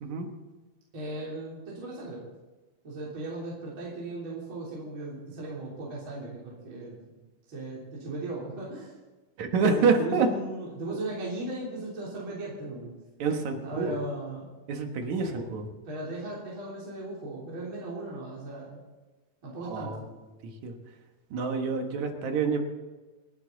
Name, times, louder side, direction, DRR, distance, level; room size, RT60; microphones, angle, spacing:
voice 1, 0.9-2.3 2.8-6.9 7.5-8.9 9.6-12.9 13.6-14.5 15.2-15.5 15.8-18.8 19.4-20.0, right 2 dB, 35° right, -6 dB, 3.9 m, -37 dB
voice 2, 9.4-10.3 13.2-13.9 14.7-15.7 19.6-20.0 20.4-20.7 21.3-22.6, right 5 dB, 60° right, 4 dB, 2.5 m, -27 dB
29.0 x 9.8 x 4.0 m, 1.2 s
omnidirectional pair, 4.0 m